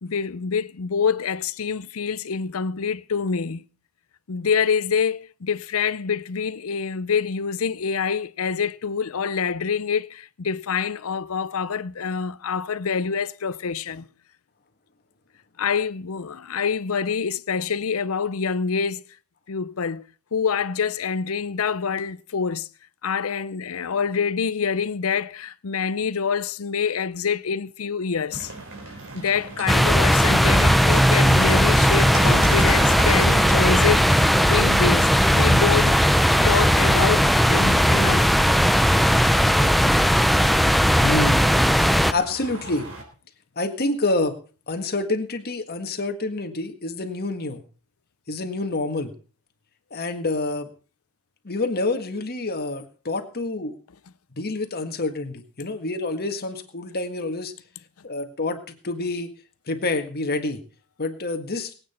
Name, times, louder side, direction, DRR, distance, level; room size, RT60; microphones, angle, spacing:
voice 1, 0.0-3.6 4.3-14.1 15.6-19.0 19.5-20.1 20.3-22.7 23.0-28.5 29.1-36.0 36.4-38.3, left 6 dB, 70° left, 0.6 m, -26 dB
sound 1, 28.3-43.0, right 3 dB, 60° right, 4.2 m, -37 dB
sound 2, 29.7-42.1, equal, ahead, 0.6 m, -18 dB
voice 2, 41.0-41.4 42.1-42.9 43.5-44.4 44.7-47.6 48.3-49.1 49.9-50.7 51.4-53.8 54.4-57.5 58.0-59.3 59.7-60.6 61.0-61.7, left 2 dB, 45° left, 1.7 m, -27 dB
21.5 x 8.9 x 4.3 m
head